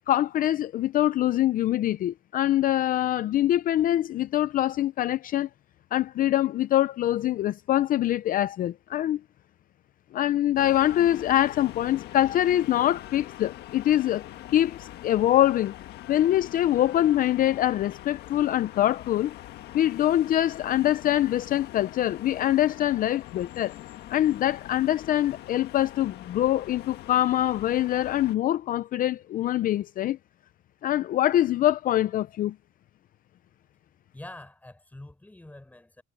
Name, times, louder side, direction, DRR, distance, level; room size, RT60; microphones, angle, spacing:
voice 1, 0.1-5.5 5.9-9.2 10.1-14.2 14.5-15.7 16.1-19.3 19.7-23.7 24.1-30.2 30.8-32.5, left 13 dB, 55° left, 0.5 m, -24 dB
sound 1, 10.6-28.4, left 14 dB, 75° left, 1.6 m, -43 dB
voice 2, 34.1-36.0, left 1 dB, 10° left, 6.5 m, -45 dB
cardioid pair, 110°, 17 cm